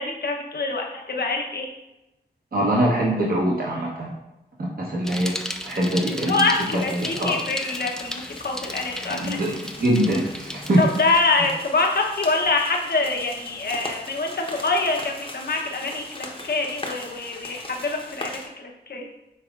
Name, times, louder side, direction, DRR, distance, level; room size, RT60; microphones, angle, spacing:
voice 1, 0.0-1.7 6.0-9.4 10.8-19.0, left 3 dB, 60° left, 1 dB, 0.9 m, -25 dB
voice 2, 2.5-4.1 4.8-5.3 5.6-6.5 6.9-7.4 9.0-9.5 9.8-10.8, right 1 dB, 55° right, -4 dB, 1.0 m, -23 dB
Bicycle, 5.0-11.2, left 1 dB, 5° left, 0.4 m, -35 dB
sound 1, 6.5-18.5, left 1 dB, 30° left, 0.8 m, -40 dB
5.9 x 3.5 x 2.4 m, 0.95 s
cardioid pair, 45°, 18 cm